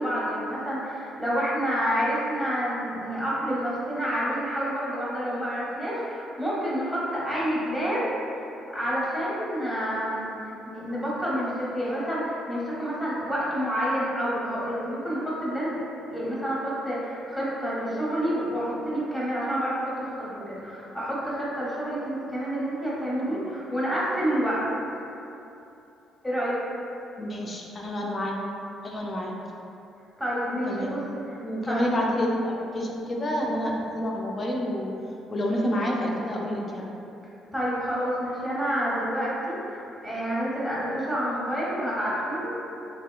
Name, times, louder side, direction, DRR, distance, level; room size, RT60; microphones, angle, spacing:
voice 1, 0.0-8.2 8.7-10.4 10.7-24.6 26.2-26.6 30.2-31.4 31.6-31.8 37.5-42.5, equal, 10° left, -8 dB, 1.2 m, -28 dB
voice 2, 27.2-28.3 28.8-29.3 30.7-30.9 31.4-34.9 35.3-36.9, equal, 40° left, -2 dB, 0.5 m, -28 dB
3.3 x 2.7 x 2.3 m, 2.8 s
hypercardioid pair, 50°, 0 cm